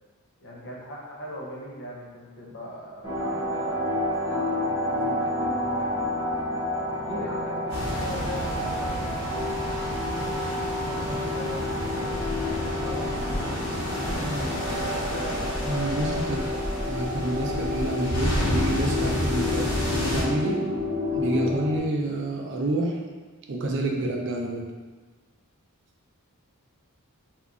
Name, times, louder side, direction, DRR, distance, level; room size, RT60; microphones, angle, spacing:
voice 1, 0.4-6.0 6.9-9.5 10.1-13.6 13.9-15.6 16.3-16.5, equal, 55° left, -2 dB, 0.7 m, -40 dB
sound 1, 3.0-21.8, left 2 dB, 10° right, 0.9 m, -30 dB
sound 2, 7.7-20.2, equal, 80° left, 1.2 m, -30 dB
voice 2, 14.2-14.5 15.7-16.4 16.9-20.7 21.1-23.0 23.5-24.6, right 2 dB, 55° right, 1 dB, 0.5 m, -28 dB
2.8 x 2.5 x 3.6 m, 1.3 s
head